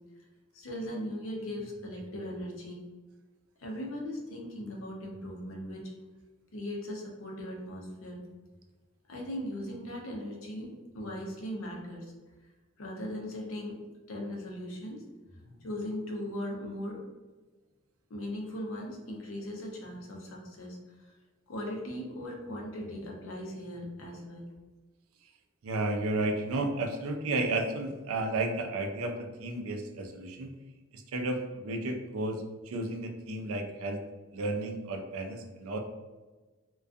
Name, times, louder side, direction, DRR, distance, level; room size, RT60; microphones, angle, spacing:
voice 1, 0.5-2.8 3.6-5.8 6.5-8.2 9.1-12.1 12.8-13.8 14.1-15.0 15.4-17.0 18.1-20.8 21.5-24.5, left 1 dB, 75° left, -1 dB, 0.5 m, -38 dB
voice 2, 25.6-30.5 30.9-34.0 34.3-35.8, right 2 dB, 80° right, 4 dB, 0.4 m, -32 dB
2.3 x 2.2 x 2.5 m, 1.3 s
head